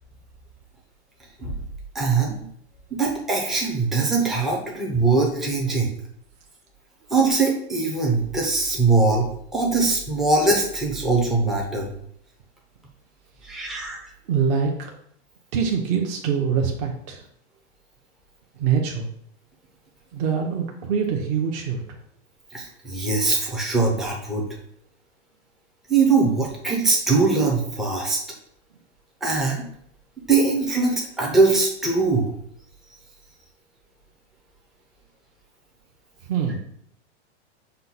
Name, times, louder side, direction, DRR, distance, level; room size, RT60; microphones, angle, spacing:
voice 1, 1.9-2.4 2.9-5.9 7.1-11.9 13.4-14.0 22.5-24.5 25.9-28.2 29.2-29.6 30.3-32.3, right 3 dB, ahead, -2 dB, 0.3 m, -21 dB
voice 2, 13.5-13.8 14.3-14.9 15.5-17.2 18.6-19.1 20.1-21.8 36.3-36.6, right 6 dB, 40° right, 1 dB, 0.6 m, -24 dB
5.6 x 2.2 x 4.0 m, 0.69 s
hypercardioid pair, 140°, 35 cm